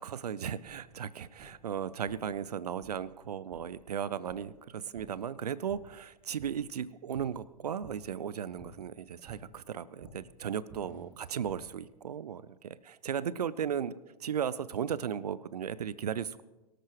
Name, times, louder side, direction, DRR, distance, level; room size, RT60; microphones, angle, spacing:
voice 1, 0.0-16.4, right 8 dB, 70° right, 19 dB, 0.6 m, -36 dB
sound 1, 0.6-0.8 1.4-1.5 2.1-2.2 2.8-2.9 3.5-3.6 4.3-4.4 4.9-5.1 5.7-5.8 6.4-6.5 7.1-7.3 7.8-7.9 8.6-8.7 9.3-9.4 10.0-10.1 10.7-11.6, right 3 dB, 40° right, 3.0 m, -51 dB
22.5 x 13.0 x 3.1 m, 1.1 s
figure-of-eight pair, 105°, 21 cm